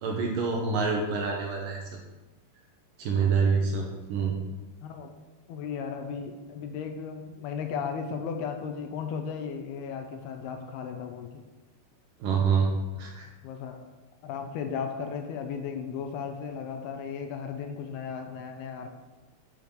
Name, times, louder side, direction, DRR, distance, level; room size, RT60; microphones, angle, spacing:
voice 1, 0.0-1.8 3.0-4.3 12.2-12.7 13.0-13.3, right 5 dB, 70° right, 0 dB, 2.3 m, -26 dB
voice 2, 4.8-5.1 5.5-11.4 13.4-13.8 14.2-18.9, left 6 dB, 75° left, 5 dB, 2.7 m, -35 dB
7.8 x 7.5 x 6.9 m, 1.2 s
omnidirectional pair, 4.9 m